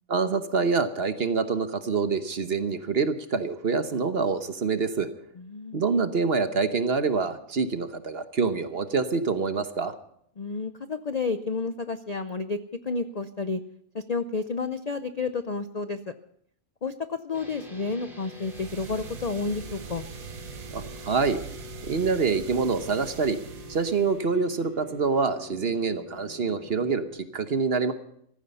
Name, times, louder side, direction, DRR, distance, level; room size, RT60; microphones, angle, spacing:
voice 1, 0.1-5.1 5.7-9.9 20.7-21.4 21.9-23.4 23.7-27.9, right 4 dB, 50° right, 9 dB, 1.2 m, -26 dB
voice 2, 5.4-5.8 10.4-13.6 13.9-16.1 16.8-20.0, left 4 dB, 45° left, 10 dB, 0.5 m, -31 dB
sound 1, 17.3-27.1, left 3 dB, ahead, 4.9 m, -46 dB
sound 2, 18.4-24.3, right 8 dB, 75° right, 1.3 m, -42 dB
15.0 x 15.0 x 5.5 m, 0.69 s
omnidirectional pair, 1.5 m